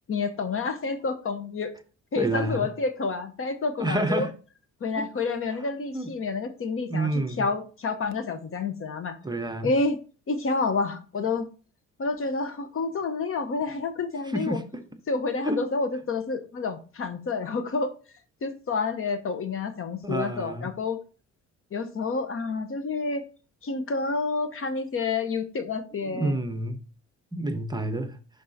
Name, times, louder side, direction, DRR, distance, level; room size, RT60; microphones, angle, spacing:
voice 1, 0.1-1.7 2.1-4.3 4.8-7.1 7.4-9.2 9.6-10.0 10.3-11.5 12.0-14.6 15.1-17.9 18.4-21.0 21.7-23.3 23.6-26.4, left 4 dB, 45° left, 1.0 m, -29 dB
voice 2, 2.1-2.7 3.8-4.3 5.0-5.1 5.9-6.1 6.9-7.5 9.2-9.7 14.3-14.8 15.4-15.6 20.0-20.7 26.0-26.8 27.3-28.2, right 1 dB, 15° right, 0.8 m, -29 dB
11.0 x 3.9 x 2.7 m
cardioid pair, 90°, 30 cm